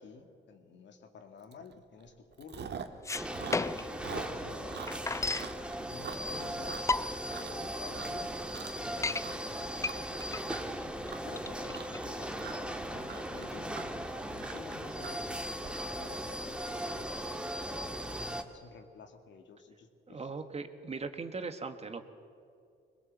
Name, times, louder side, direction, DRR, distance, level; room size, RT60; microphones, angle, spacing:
voice 1, 0.0-2.8 3.6-4.8 5.9-6.9 7.2-8.4 8.6-10.2 11.2-14.0 14.3-17.3 18.1-20.4, left 5 dB, 65° left, 6 dB, 2.1 m, -51 dB
Chewing mastication, 1.5-1.7 2.0-3.0 3.3-7.6 7.9-8.3 8.5-8.9 9.2-15.7, right 7 dB, 60° right, 1.5 m, -44 dB
sound 1, 2.9-4.0 4.4-4.5 4.6-5.5 6.3-6.4 6.7-7.4 7.9-8.0 8.2-8.3 8.7-9.2 9.8-12.7, left 3 dB, 15° left, 0.5 m, -33 dB
sound 2, 3.1-18.4, equal, 5° right, 1.7 m, -38 dB
voice 2, 20.1-22.1, right 4 dB, 30° right, 8 dB, 1.5 m, -39 dB
21.5 x 20.0 x 7.4 m, 2.4 s
cardioid pair, 90°, 20 cm